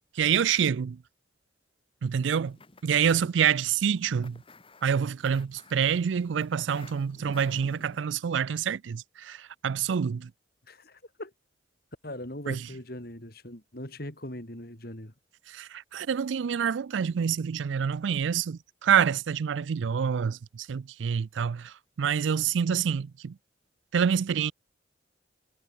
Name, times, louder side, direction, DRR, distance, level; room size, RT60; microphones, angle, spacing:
voice 1, 0.2-1.0 2.0-2.6 2.8-4.4 4.8-10.3 12.5-12.6 15.5-23.3 23.9-24.5, right 7 dB, 85° right, 0.4 m, -27 dB
sound 1, 2.4-8.0, left 2 dB, 30° left, 3.6 m, -53 dB
voice 2, 10.7-11.3 12.0-15.1, left 1 dB, 55° left, 5.0 m, -40 dB
head